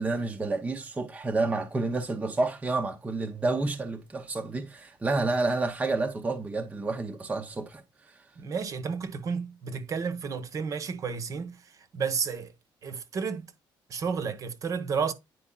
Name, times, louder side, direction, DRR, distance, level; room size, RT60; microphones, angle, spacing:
voice 1, 0.0-8.1, right 3 dB, 15° right, 0.6 m, -29 dB
voice 2, 8.4-12.5 12.8-13.5 13.9-15.1, right 5 dB, 40° right, 0.9 m, -32 dB
9.7 x 4.6 x 2.2 m
cardioid pair, 160°, 8 cm